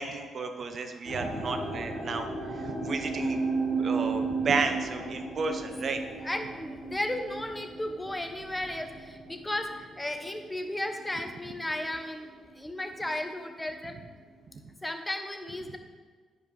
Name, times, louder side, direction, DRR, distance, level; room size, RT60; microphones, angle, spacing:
voice 1, 0.0-3.4 3.8-6.0, right 4 dB, 55° right, 6 dB, 0.9 m, -32 dB
sound 1, 1.0-12.2 12.5-13.1 13.7-13.8, right 3 dB, 85° right, 2.6 m, -35 dB
voice 2, 6.2-14.0 14.8-15.8, left 1 dB, 15° left, 6 dB, 1.1 m, -34 dB
9.6 x 5.1 x 4.9 m, 1.5 s
supercardioid pair, 55°, 0 cm